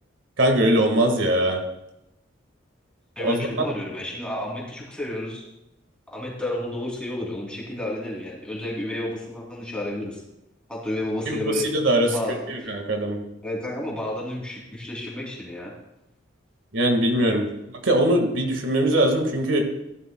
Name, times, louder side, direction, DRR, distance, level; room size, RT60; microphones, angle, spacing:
voice 1, 0.4-1.6 3.2-3.4 11.3-11.4 11.7-12.1 12.5-13.2 16.7-17.5 17.8-19.6, right 1 dB, 85° right, 3 dB, 1.7 m, -21 dB
voice 2, 3.2-5.4 6.1-10.2 10.7-11.7 12.0-12.7 13.4-15.7, left 1 dB, 5° left, -4 dB, 2.9 m, -31 dB
15.0 x 12.0 x 2.3 m, 0.90 s
head